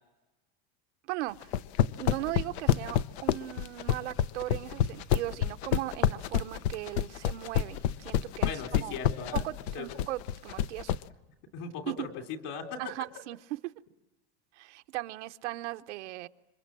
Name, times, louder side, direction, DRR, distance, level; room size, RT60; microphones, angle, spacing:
voice 1, 1.1-1.6 2.0-8.9 9.3-11.0 11.9-12.0 12.8-13.7 14.5-16.3, right 17 dB, 90° right, 0.9 m, -38 dB
sound 1, 1.4-11.0, left 10 dB, 70° left, 0.8 m, -27 dB
voice 2, 8.4-9.4 9.7-9.9 11.5-12.8, left 6 dB, 50° left, 3.5 m, -38 dB
27.5 x 23.5 x 7.6 m
supercardioid pair, 155°, 34 cm